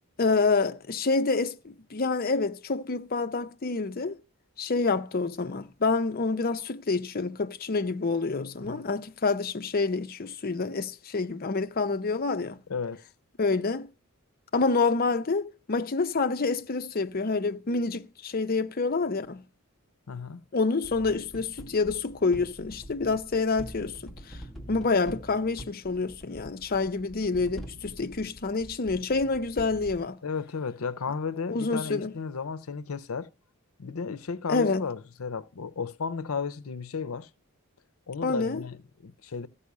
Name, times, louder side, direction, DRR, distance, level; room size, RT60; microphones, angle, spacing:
voice 1, 0.2-4.2 4.6-12.6 13.4-13.9 14.5-19.4 20.5-24.4 24.7-30.2 31.5-32.1 34.5-34.8 38.2-38.6, left 4 dB, 45° left, 0.6 m, -27 dB
voice 2, 8.6-8.9 12.7-13.1 20.1-20.4 30.2-33.3 33.8-37.3 38.1-39.5, left 5 dB, 80° left, 0.7 m, -34 dB
sound 1, 20.8-30.1, equal, ahead, 1.7 m, -45 dB
14.5 x 5.5 x 8.2 m
head